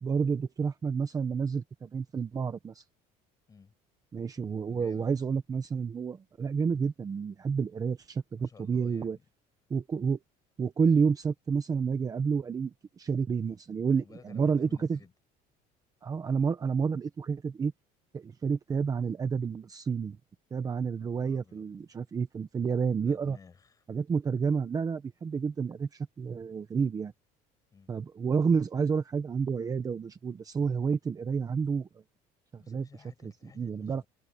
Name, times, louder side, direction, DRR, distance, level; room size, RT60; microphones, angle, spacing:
voice 1, 0.0-2.8 4.1-9.2 9.7-10.2 10.6-15.0 16.0-17.7 18.1-20.2 20.5-23.4 23.9-27.1 27.9-31.9 32.5-32.9 33.2-33.3 33.6-34.0, right 6 dB, 20° right, 1.0 m, -30 dB
voice 2, 4.3-5.1 8.4-9.2 14.0-15.1 21.0-21.7 23.0-23.9 27.7-28.0 32.6-34.1, left 5 dB, 20° left, 6.8 m, -55 dB
cardioid pair, 155°, 17 cm